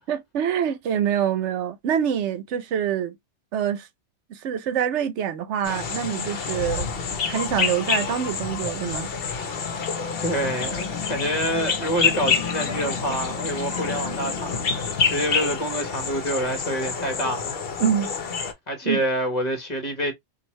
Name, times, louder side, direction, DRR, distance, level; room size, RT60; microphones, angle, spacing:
voice 1, 0.1-3.1 3.5-3.9 4.3-6.9 7.3-9.1 17.8-18.1 18.8-19.0, right 9 dB, 75° right, 0.9 m, -25 dB
sound 1, 5.6-18.5, left 6 dB, 55° left, 1.0 m, -27 dB
voice 2, 10.2-17.5 18.7-20.1, equal, 35° left, 1.3 m, -27 dB
4.4 x 2.6 x 3.1 m
omnidirectional pair, 1.2 m